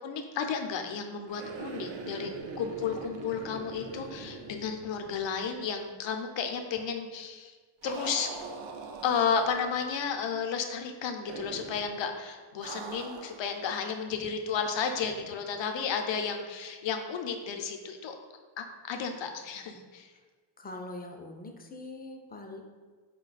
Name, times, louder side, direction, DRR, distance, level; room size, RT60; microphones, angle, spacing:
voice 1, 0.0-2.3 2.6-7.5 7.8-8.3 9.0-18.2 18.6-20.1, left 6 dB, 75° left, 5 dB, 0.6 m, -32 dB
sound 1, 1.3-5.4 5.7-5.8 7.8-9.8 11.3-11.9 12.6-13.5, right 4 dB, 75° right, 0.5 m, -42 dB
voice 2, 20.6-22.6, left 2 dB, 20° left, 3 dB, 0.3 m, -42 dB
4.3 x 2.2 x 3.9 m, 1.4 s
wide cardioid pair, 135°, 45 cm